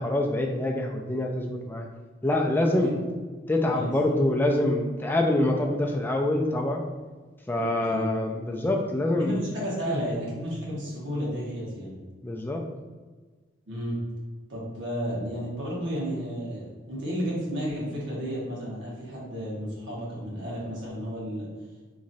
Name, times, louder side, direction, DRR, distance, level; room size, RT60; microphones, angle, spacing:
voice 1, 0.0-1.9 2.2-2.9 3.5-6.8 7.5-9.4 9.8-10.0 12.2-12.6, left 1 dB, 10° left, 1 dB, 0.3 m, -25 dB
voice 2, 3.7-4.2 4.5-4.7 7.5-8.1 9.2-11.9 13.7-14.0 14.5-21.5, equal, 75° right, -5 dB, 1.3 m, -32 dB
3.0 x 2.5 x 4.0 m, 1.4 s
head